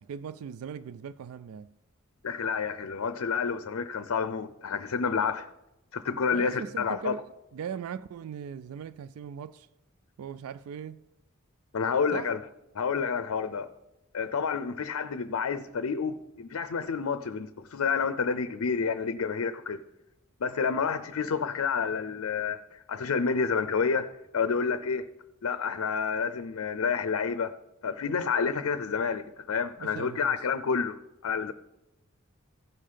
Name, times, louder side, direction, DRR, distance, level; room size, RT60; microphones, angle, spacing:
voice 1, 0.0-1.7 6.3-9.7 10.2-11.0 12.1-12.3 29.8-30.4, right 7 dB, 85° right, 0.3 m, -39 dB
voice 2, 2.2-5.5 5.9-7.1 11.7-12.4 12.7-13.7 14.1-19.8 20.4-25.1 25.4-27.5 27.8-31.5, left 5 dB, 85° left, 0.5 m, -29 dB
16.0 x 5.6 x 5.0 m
head